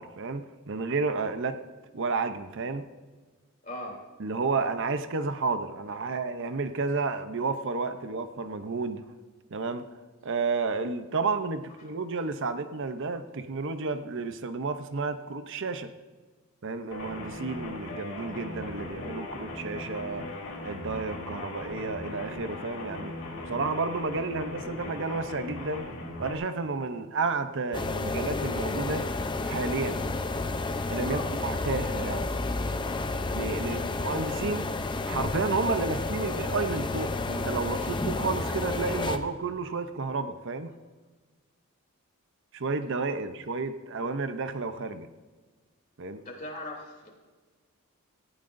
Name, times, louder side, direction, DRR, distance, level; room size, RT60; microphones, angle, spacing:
voice 1, 0.0-1.6 1.9-2.8 4.2-9.1 9.5-9.9 10.2-15.9 16.6-20.3 20.6-25.9 26.2-29.1 29.4-30.0 30.9-32.3 33.3-34.7 35.1-40.7 42.5-45.1 46.0-46.2, right 4 dB, 60° right, 10 dB, 0.7 m, -31 dB
voice 2, 3.6-4.0 31.0-31.3 33.6-33.9 46.2-47.1, left 1 dB, 40° left, -1 dB, 3.1 m, -39 dB
sound 1, 16.9-26.3, left 2 dB, 80° left, 3.6 m, -39 dB
sound 2, 27.7-39.2, left 3 dB, 20° left, 0.6 m, -31 dB
18.0 x 15.5 x 2.6 m, 1.4 s
head